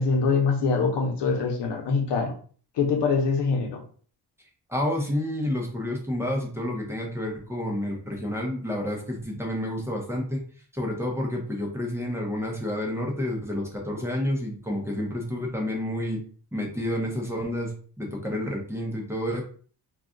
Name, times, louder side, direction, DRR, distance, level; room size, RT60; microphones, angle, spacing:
voice 1, 0.0-2.3 2.8-3.8, left 4 dB, 90° left, 3 dB, 0.9 m, -24 dB
voice 2, 4.7-10.4 10.7-16.2 16.5-19.4, left 1 dB, 5° right, -1 dB, 0.7 m, -29 dB
2.4 x 2.3 x 3.7 m, 0.43 s
wide cardioid pair, 130°, 40 cm